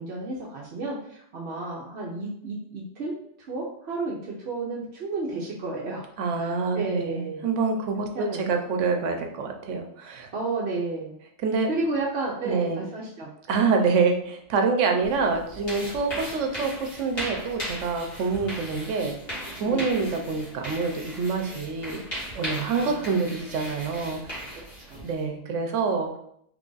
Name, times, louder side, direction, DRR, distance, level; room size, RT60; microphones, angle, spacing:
voice 1, 0.0-3.1 3.5-6.0 6.3-7.5 8.0-8.5 10.3-11.1 11.7-13.3 19.6-19.9 22.6-23.1 24.8-25.3, right 3 dB, 65° right, -4 dB, 0.9 m, -32 dB
voice 2, 6.2-10.3 11.4-11.7 12.4-12.8 13.5-19.2 19.6-22.0 22.3-24.5 25.0-26.2, right 4 dB, 90° right, 4 dB, 1.0 m, -26 dB
sound 1, 15.0-25.2, equal, 55° left, 1.7 m, -37 dB
3.3 x 2.4 x 3.8 m, 0.70 s
omnidirectional pair, 1.2 m